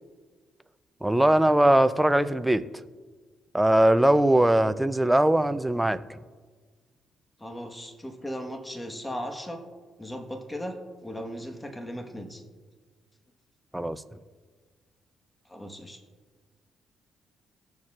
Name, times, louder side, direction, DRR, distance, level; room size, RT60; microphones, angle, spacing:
voice 1, 1.0-2.6 3.5-6.0 13.7-14.0, right 1 dB, 5° right, 11 dB, 0.5 m, -21 dB
voice 2, 7.4-9.6 10.0-10.7 11.0-12.4 15.5-16.0, equal, 10° left, 4 dB, 1.3 m, -37 dB
19.5 x 7.1 x 2.4 m, 1.4 s
cardioid pair, 90°, 0 cm